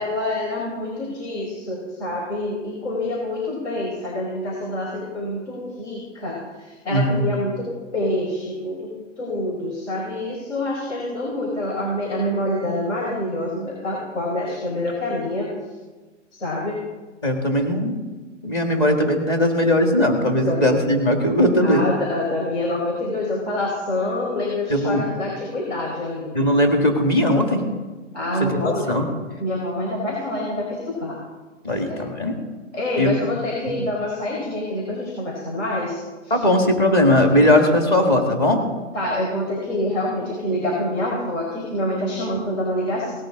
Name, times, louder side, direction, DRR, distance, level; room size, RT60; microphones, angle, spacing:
voice 1, 0.0-7.7 7.9-8.9 9.2-15.5 16.3-16.8 20.4-20.6 21.6-26.3 28.1-28.9 29.4-31.2 31.7-32.0 32.7-36.4 38.9-43.1, left 1 dB, 65° left, -2 dB, 4.9 m, -26 dB
voice 2, 6.9-7.2 17.2-18.0 18.4-21.8 24.7-25.0 26.3-27.6 28.4-29.0 31.6-32.3 33.0-33.1 36.3-38.6, left 1 dB, 20° left, 2 dB, 1.8 m, -19 dB
18.5 x 13.0 x 3.8 m, 1.3 s
hypercardioid pair, 180°, 38 cm